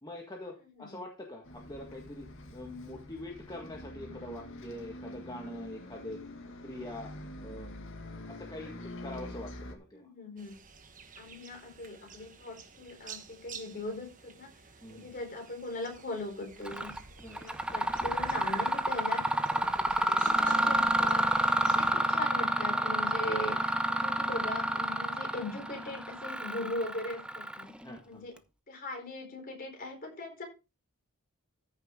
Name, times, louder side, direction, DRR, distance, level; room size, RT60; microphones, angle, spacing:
voice 1, 0.0-6.2 6.6-7.1 7.4-7.8 8.3-10.1 14.8-15.1 17.2-17.4 19.5-19.8 21.6-21.8 27.7-28.2, left 1 dB, 20° left, 0 dB, 1.7 m, -44 dB
Bus, 1.4-9.7, left 1 dB, 60° left, 1.9 m, -45 dB
voice 2, 9.9-10.6 11.2-14.5 14.9-17.0 17.2-27.7 28.1-28.3 28.7-30.4, left 2 dB, 40° left, 3 dB, 4.2 m, -40 dB
sound 1, 10.4-21.9, right 5 dB, 35° right, 1.3 m, -51 dB
Mechanisms, 16.6-17.0 17.3-27.9, right 1 dB, 5° right, 0.6 m, -29 dB
14.0 x 6.6 x 3.7 m, 0.29 s
head